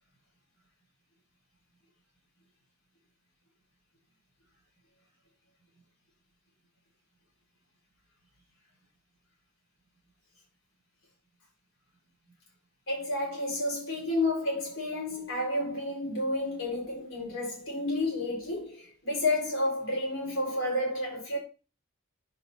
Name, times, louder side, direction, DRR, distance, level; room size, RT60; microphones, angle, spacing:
voice 1, 12.9-21.4, left 1 dB, 60° left, 4.7 m, -31 dB
10.0 x 6.5 x 2.8 m
head